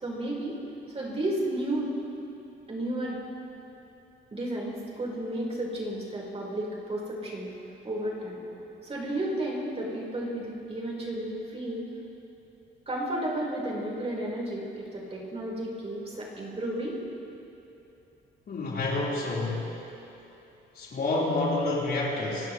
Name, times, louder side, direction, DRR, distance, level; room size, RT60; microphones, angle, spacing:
voice 1, 0.0-0.6 0.9-1.9 2.7-3.2 4.3-7.5 7.8-8.4 8.8-11.8 12.9-17.0, right 1 dB, 30° right, -4 dB, 4.4 m, -32 dB
voice 2, 18.5-19.7 20.7-22.5, left 2 dB, 50° left, -5 dB, 4.1 m, -28 dB
26.5 x 17.0 x 3.2 m, 2.9 s
cardioid pair, 90°, 20 cm